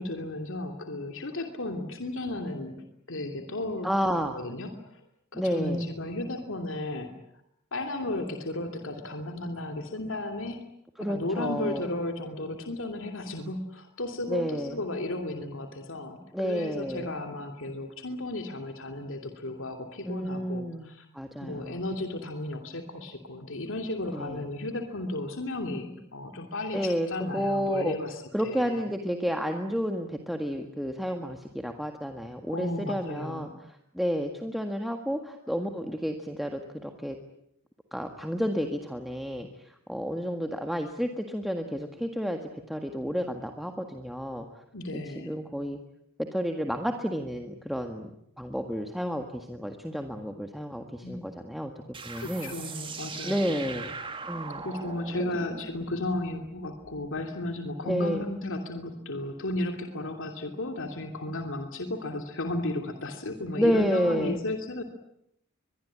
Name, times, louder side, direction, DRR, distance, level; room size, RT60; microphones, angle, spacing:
voice 1, 0.0-3.9 4.3-5.0 5.3-7.1 7.7-10.6 11.0-21.1 21.4-28.8 32.5-33.5 44.7-45.3 51.0-51.2 52.2-53.6 54.5-64.8, left 2 dB, 65° left, 4 dB, 2.9 m, -34 dB
voice 2, 3.8-4.4 5.3-5.8 11.0-11.9 14.3-14.8 16.3-17.1 20.1-21.8 24.1-24.4 26.7-27.1 27.3-27.9 28.3-33.5 33.9-37.2 37.9-42.4 42.7-44.6 44.9-45.8 46.3-48.1 48.4-52.5 53.2-54.0 54.3-54.6 55.3-55.5 57.8-58.2 63.5-64.4, equal, ahead, 4 dB, 1.8 m, -31 dB
sound 1, 51.9-57.2, right 4 dB, 25° right, 2.6 m, -41 dB
23.0 x 23.0 x 9.8 m, 0.76 s
head